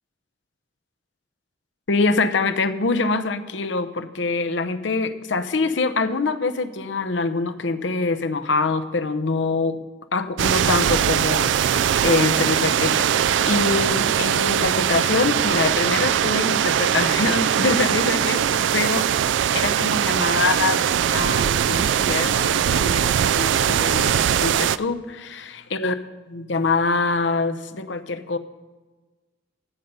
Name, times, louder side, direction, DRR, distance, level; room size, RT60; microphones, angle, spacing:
voice 1, 1.9-9.8 10.1-19.1 19.5-20.8 21.1-25.9 26.3-28.4, left 3 dB, 85° left, 10 dB, 0.8 m, -24 dB
sound 1, 10.4-24.8, right 9 dB, 80° right, 0.3 m, -21 dB
13.0 x 5.5 x 8.0 m, 1.3 s
head